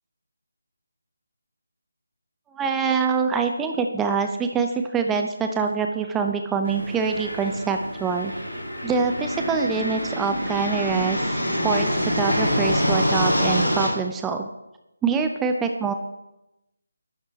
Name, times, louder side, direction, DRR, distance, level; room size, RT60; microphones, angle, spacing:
voice 1, 2.5-8.3 8.8-14.5 15.0-15.9, right 5 dB, 10° right, 5 dB, 0.3 m, -25 dB
sound 1, 6.7-13.9, equal, 80° left, 2.2 m, -25 dB
11.5 x 4.4 x 4.3 m, 0.94 s
figure-of-eight pair, 155°, 0 cm